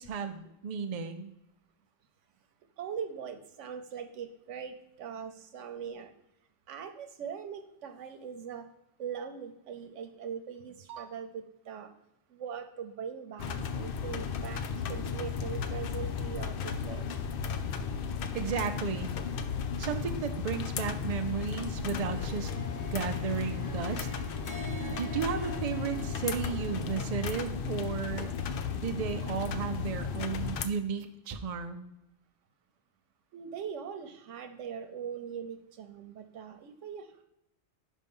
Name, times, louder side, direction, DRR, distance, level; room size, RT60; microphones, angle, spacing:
voice 1, 0.0-1.3 18.3-19.1 19.8-24.3 24.9-28.3 28.7-31.9, right 6 dB, 45° right, 6 dB, 0.5 m, -34 dB
voice 2, 2.8-6.1 6.7-8.7 9.0-11.9 12.3-14.6 14.9-17.2 33.3-37.2, right 7 dB, 85° right, 7 dB, 1.1 m, -41 dB
sound 1, 13.4-30.7, left 6 dB, 60° left, 0.7 m, -35 dB
Harp, 22.0-27.3, equal, 15° left, 1.6 m, -46 dB
5.5 x 5.1 x 5.4 m, 0.84 s
omnidirectional pair, 1.2 m